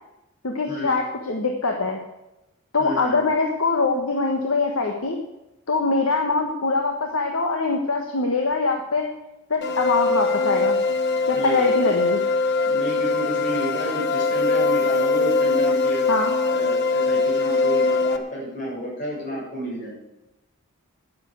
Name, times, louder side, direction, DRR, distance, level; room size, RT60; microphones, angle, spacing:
voice 1, 0.4-2.0 2.7-5.2 5.7-9.1 9.5-10.8 11.3-12.2 16.1-16.3, left 3 dB, 80° left, 2 dB, 1.4 m, -23 dB
voice 2, 2.8-3.2 11.3-11.7 12.6-16.2 16.5-20.1, equal, 40° left, -5 dB, 6.4 m, -31 dB
sound 1, 9.6-18.2, left 3 dB, 55° left, 1.0 m, -22 dB
10.5 x 9.8 x 8.1 m, 0.97 s
head